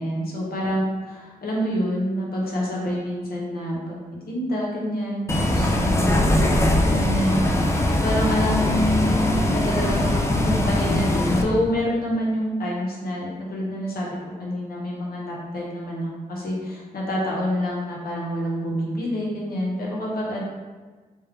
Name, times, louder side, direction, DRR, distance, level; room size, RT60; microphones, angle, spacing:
voice 1, 0.0-4.0 4.3-6.6 6.9-20.4, equal, 75° left, -4 dB, 1.0 m, -27 dB
Bus, 5.3-11.4, left 1 dB, 15° left, 0.4 m, -21 dB
3.3 x 3.2 x 3.4 m, 1.4 s
wide cardioid pair, 110°, 16 cm